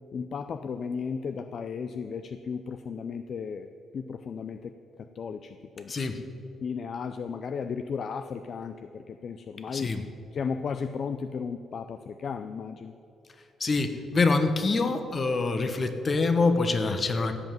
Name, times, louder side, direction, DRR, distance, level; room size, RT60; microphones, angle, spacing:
voice 1, 0.1-3.7 3.9-5.9 6.6-9.9 10.3-12.9, left 6 dB, 55° left, 10 dB, 0.5 m, -35 dB
voice 2, 5.9-6.2 9.7-10.0 13.6-17.4, left 3 dB, 35° left, 8 dB, 1.2 m, -25 dB
16.5 x 5.6 x 9.1 m, 2.9 s
cardioid pair, 90°, 0 cm